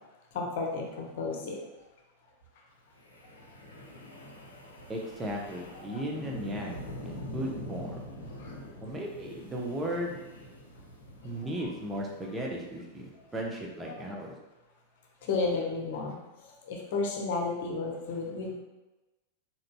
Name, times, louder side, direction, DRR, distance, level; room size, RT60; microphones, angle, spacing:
voice 1, 0.3-1.6 5.9-6.0 8.4-8.5 13.9-14.0 15.2-16.2 16.6-18.5, left 4 dB, 50° left, -1 dB, 0.9 m, -32 dB
Wind, 3.0-13.2, left 1 dB, 80° left, 0.6 m, -45 dB
voice 2, 4.9-8.0 8.8-10.2 11.2-14.4, equal, 15° right, -1 dB, 0.8 m, -36 dB
4.4 x 3.8 x 2.2 m, 1.1 s
figure-of-eight pair, 90°, 0 cm